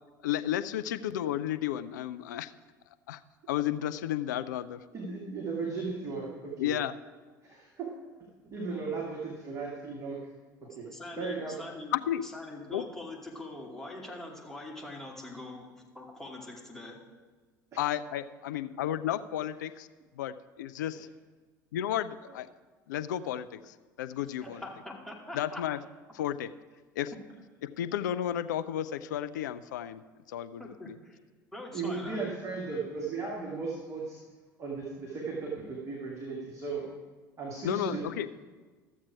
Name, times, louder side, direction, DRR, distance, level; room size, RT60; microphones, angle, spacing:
voice 1, 0.2-2.5 3.1-3.2 3.5-4.8 6.6-6.9 11.9-12.2 12.7-12.8 17.8-19.9 20.1-21.1 21.7-22.5 22.9-24.6 25.3-25.8 26.1-26.5 27.0-27.1 27.6-30.0 30.3-30.9 37.6-38.3, left 11 dB, 65° left, 12 dB, 0.4 m, -32 dB
voice 2, 4.9-6.8 7.8-7.9 8.5-10.2 10.6-10.9 11.2-11.6 17.7-17.8 31.7-34.2 34.6-36.8 37.4-38.0, right 4 dB, 30° right, -3 dB, 2.1 m, -36 dB
voice 3, 10.9-12.0 12.2-17.0 24.4-25.6 30.6-31.2 31.5-32.3, left 2 dB, 5° left, -2 dB, 2.4 m, -43 dB
13.0 x 7.3 x 4.8 m, 1.4 s
figure-of-eight pair, 70°, 10 cm